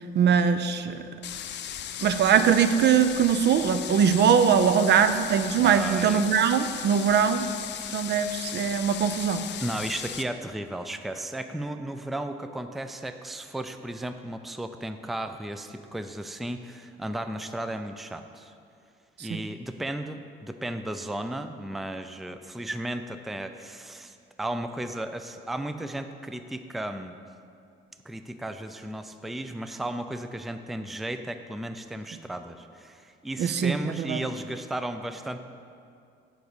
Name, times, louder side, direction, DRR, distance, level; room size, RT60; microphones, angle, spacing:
voice 1, 0.1-1.1 2.0-7.5 7.9-9.4 19.2-19.4 33.4-34.2, right 7 dB, 60° right, 11 dB, 0.5 m, -22 dB
sound 1, 1.2-10.2, left 10 dB, 60° left, 0.5 m, -37 dB
voice 2, 5.6-6.2 9.6-18.5 19.2-27.1 28.1-35.5, right 1 dB, ahead, 8 dB, 0.4 m, -35 dB
9.3 x 4.0 x 7.0 m, 2.4 s
cardioid pair, 90°, 20 cm